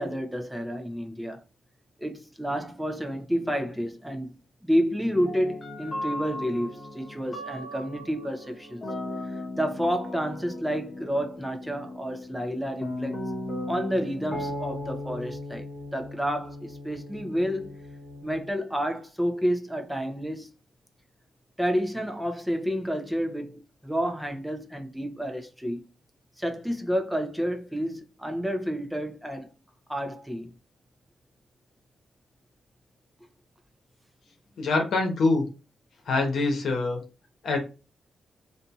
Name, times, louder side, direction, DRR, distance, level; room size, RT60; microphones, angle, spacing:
voice 1, 0.0-1.4 2.0-8.8 9.2-13.2 13.7-15.7 15.9-17.8 18.2-20.5 21.6-25.8 26.4-29.5 29.9-30.6, equal, 5° right, 0.7 m, -30 dB
sound 1, 5.1-18.5, left 1 dB, 35° left, 1.0 m, -37 dB
voice 2, 34.6-35.4 36.1-37.0 37.4-37.6, left 3 dB, 70° left, 0.9 m, -24 dB
2.7 x 2.6 x 2.3 m
supercardioid pair, 50°, 0 cm